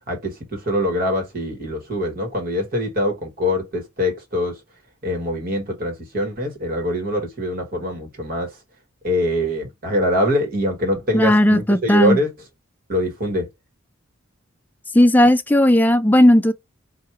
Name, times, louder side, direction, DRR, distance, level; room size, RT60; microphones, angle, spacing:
voice 1, 0.1-4.6 5.0-8.5 9.0-12.3 12.9-13.5, left 1 dB, 45° right, 1.4 m, -23 dB
voice 2, 11.1-12.2 14.9-16.5, left 1 dB, 10° left, 0.4 m, -15 dB
4.4 x 2.4 x 4.6 m
head